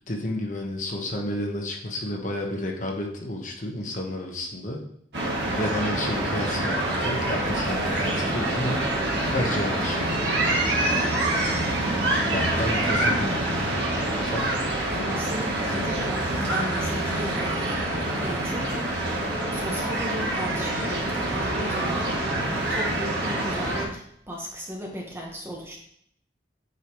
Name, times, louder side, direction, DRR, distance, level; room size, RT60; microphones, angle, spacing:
voice 1, 0.1-4.8 5.5-8.8 9.3-10.0 12.3-13.5 14.2-14.6, left 1 dB, 45° left, 1 dB, 1.1 m, -31 dB
sound 1, 5.1-23.8, right 1 dB, 75° right, 1.8 m, -26 dB
voice 2, 14.9-17.6 18.2-19.0 19.5-22.1 22.5-25.8, equal, 15° right, -1 dB, 1.2 m, -36 dB
8.9 x 4.9 x 3.0 m, 0.69 s
head